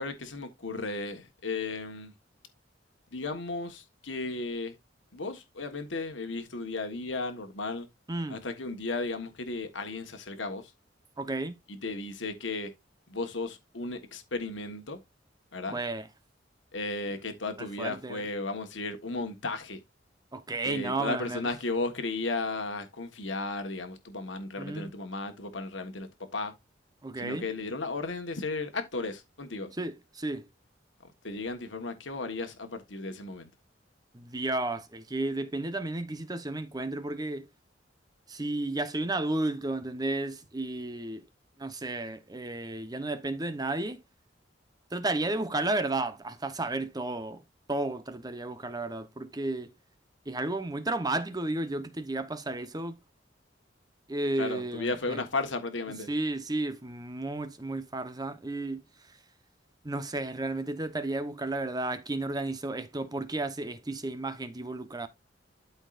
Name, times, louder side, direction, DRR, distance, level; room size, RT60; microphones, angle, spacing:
voice 1, 0.0-2.1 3.1-4.8 5.1-7.9 8.3-10.7 11.7-12.7 13.1-15.0 15.5-15.8 16.7-19.8 20.6-26.5 27.2-29.7 31.0-33.5 54.4-56.1, left 3 dB, 80° left, 1.4 m, -35 dB
voice 2, 11.2-11.6 15.7-16.1 17.6-18.2 20.3-21.5 24.6-24.9 27.0-27.5 29.7-30.5 34.1-37.5 38.3-41.3 41.6-44.0 44.9-47.4 47.7-49.7 50.3-53.0 54.1-55.2 56.1-58.8 59.8-65.1, right 2 dB, 20° right, 0.9 m, -33 dB
12.5 x 4.5 x 2.5 m
head